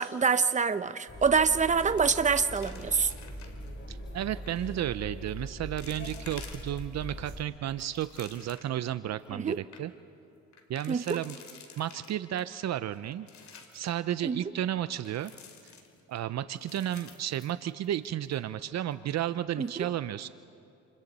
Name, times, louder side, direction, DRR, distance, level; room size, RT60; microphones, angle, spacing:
voice 1, 0.0-3.1 9.3-9.6 10.9-11.2 14.2-14.4 19.6-19.8, right 5 dB, 25° right, 11 dB, 0.8 m, -26 dB
sound 1, 1.0-1.3 1.6-3.7 4.3-4.7 5.3-5.4 5.8-7.1 7.6-8.8 9.2-9.3 9.5-9.8 10.5-12.4 12.9-13.9 15.0-16.2 16.6-18.1 18.3-18.4 18.9-19.2, left 6 dB, 65° left, 2.8 m, -51 dB
sound 2, 1.1-7.4, equal, 40° left, 4.2 m, -41 dB
voice 2, 3.9-9.9 10.7-11.4 11.8-13.3 13.7-15.3 16.1-20.3, right 11 dB, 60° right, 13 dB, 0.6 m, -33 dB
29.0 x 28.5 x 4.2 m, 2.8 s
cardioid pair, 90°, 30 cm